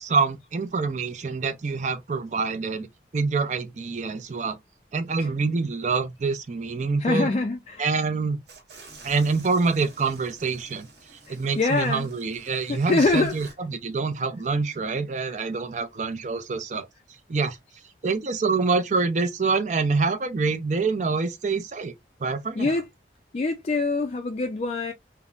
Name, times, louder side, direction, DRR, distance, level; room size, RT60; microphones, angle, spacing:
voice 1, 0.0-2.9 3.1-4.6 4.9-7.3 7.8-8.4 9.0-10.9 11.3-16.9 17.3-17.6 18.0-21.9 22.2-22.7, right 4 dB, 40° right, 0.4 m, -26 dB
voice 2, 7.0-7.9 11.3-12.1 12.7-13.3 15.3-15.4 22.6-22.9 23.3-24.9, left 3 dB, 35° left, 0.3 m, -24 dB
sound 1, 8.5-13.5, right 3 dB, 70° right, 1.1 m, -49 dB
3.4 x 2.0 x 2.4 m
head